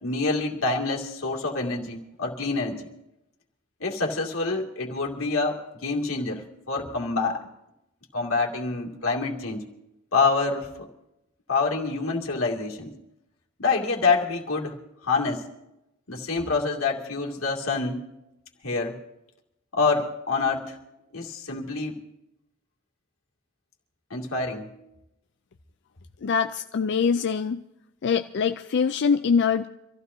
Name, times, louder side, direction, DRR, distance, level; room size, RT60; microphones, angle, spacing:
voice 1, 0.0-2.8 3.8-7.4 8.1-9.7 10.1-10.7 11.5-12.9 13.6-14.8 15.1-15.4 16.1-18.0 18.6-18.9 19.7-20.7 21.1-22.0 24.1-24.7, left 4 dB, 90° left, -1 dB, 2.4 m, -26 dB
voice 2, 26.2-27.6 28.0-29.7, left 6 dB, 55° left, 8 dB, 0.4 m, -23 dB
26.0 x 15.0 x 2.7 m, 0.89 s
head